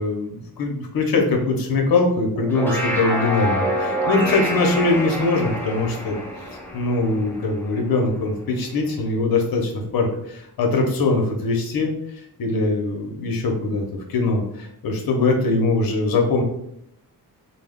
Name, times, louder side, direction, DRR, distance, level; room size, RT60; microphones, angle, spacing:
voice 1, 0.0-6.2 6.5-11.9 12.4-16.4, left 3 dB, 65° left, 2 dB, 0.7 m, -22 dB
sound 1, 2.3-7.9, equal, 5° left, 0.3 m, -27 dB
2.2 x 2.0 x 3.4 m, 0.74 s
wide cardioid pair, 150°, 39 cm